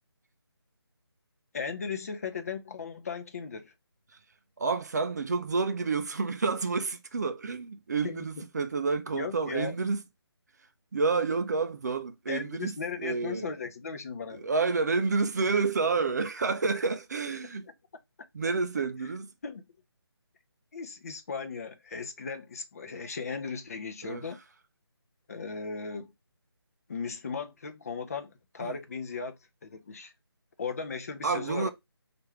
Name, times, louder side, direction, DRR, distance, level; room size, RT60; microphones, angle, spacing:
voice 1, 1.5-3.7 8.0-8.2 9.1-9.8 12.3-14.5 19.4-19.6 20.7-24.4 25.3-26.1 26.9-29.4 29.6-30.1 30.6-31.7, left 5 dB, 35° left, 0.5 m, -37 dB
voice 2, 4.6-10.0 10.9-13.5 14.3-17.7 18.3-19.3 24.0-24.2 28.6-28.8 31.2-31.7, right 4 dB, 40° right, 0.4 m, -29 dB
3.0 x 2.5 x 4.4 m
figure-of-eight pair, 160°, 14 cm